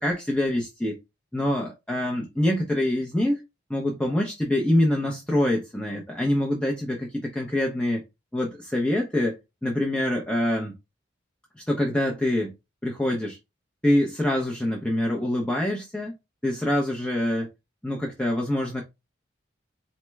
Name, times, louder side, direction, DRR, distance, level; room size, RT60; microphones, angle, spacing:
voice 1, 0.0-1.0 1.3-3.4 3.7-8.0 8.3-9.4 9.6-10.7 11.7-12.5 12.8-13.4 13.8-16.1 16.4-17.5 17.8-18.8, left 1 dB, 5° left, 0.5 m, -25 dB
4.2 x 3.0 x 2.2 m
head